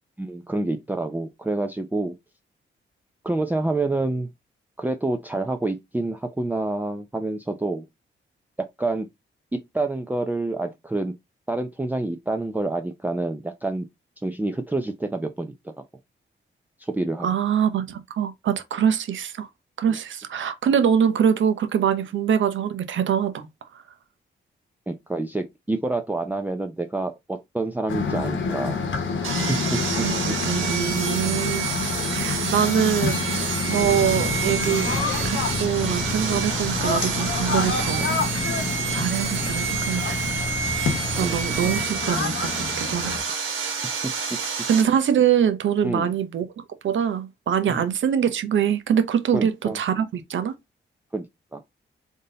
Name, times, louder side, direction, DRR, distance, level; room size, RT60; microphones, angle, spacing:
voice 1, 0.2-2.2 3.2-4.3 4.8-7.8 8.8-9.1 9.5-11.1 11.5-13.9 14.2-15.5 16.8-17.3 19.9-20.0 24.9-28.8 29.5-30.4 33.6-33.8 38.6-38.8 41.2-41.4 44.0-44.1 45.8-46.1 47.7-47.8 49.3-49.8 51.1-51.3 51.5-51.6, right 2 dB, 10° right, 0.5 m, -27 dB
voice 2, 17.2-19.5 19.8-23.5 30.0-31.7 32.1-33.3 33.6-35.0 35.2-38.5 38.9-40.4 41.2-43.1 44.7-46.5 46.8-50.5, right 8 dB, 70° right, 0.7 m, -24 dB
sound 1, 27.9-43.2, left 4 dB, 75° left, 1.2 m, -28 dB
Sawing, 29.2-44.8, right 6 dB, 90° right, 1.2 m, -29 dB
sound 2, 33.8-41.8, equal, 30° left, 0.9 m, -32 dB
3.7 x 2.8 x 3.8 m
cardioid pair, 70°, 20 cm